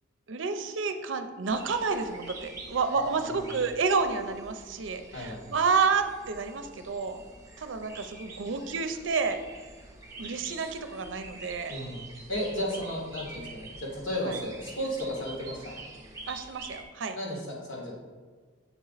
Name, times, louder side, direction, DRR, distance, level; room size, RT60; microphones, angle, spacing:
voice 1, 0.3-7.2 7.6-9.4 10.2-11.8 14.3-14.4 16.3-17.2, right 5 dB, 75° right, 8 dB, 0.5 m, -30 dB
sound 1, 1.5-16.8, right 2 dB, 15° right, 0.7 m, -46 dB
voice 2, 3.2-3.5 5.1-5.4 11.7-12.0 12.3-15.8 17.1-17.9, equal, 80° left, -4 dB, 2.0 m, -34 dB
7.2 x 4.1 x 4.0 m, 1.5 s
head